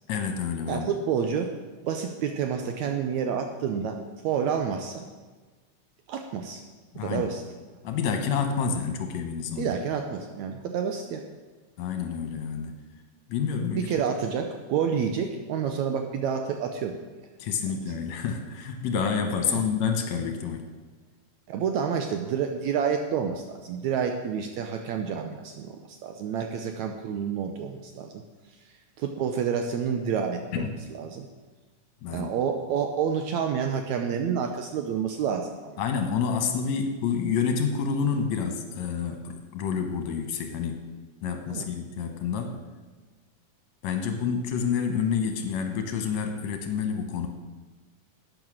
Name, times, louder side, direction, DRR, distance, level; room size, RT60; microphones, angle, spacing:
voice 1, 0.1-0.9 6.9-7.3 7.8-9.7 11.8-12.8 13.3-13.9 17.4-20.6 30.5-30.8 32.0-32.3 35.8-40.8 41.2-42.6 43.8-47.3, left 6 dB, 65° left, 5 dB, 2.2 m, -28 dB
voice 2, 0.7-1.6 1.8-5.1 6.1-6.6 7.0-7.4 9.6-11.2 13.7-17.0 19.4-19.6 21.5-28.2 29.0-31.3 32.1-35.8 41.3-41.7, right 7 dB, 75° right, 5 dB, 1.8 m, -29 dB
11.5 x 9.0 x 6.3 m, 1.3 s
omnidirectional pair, 3.8 m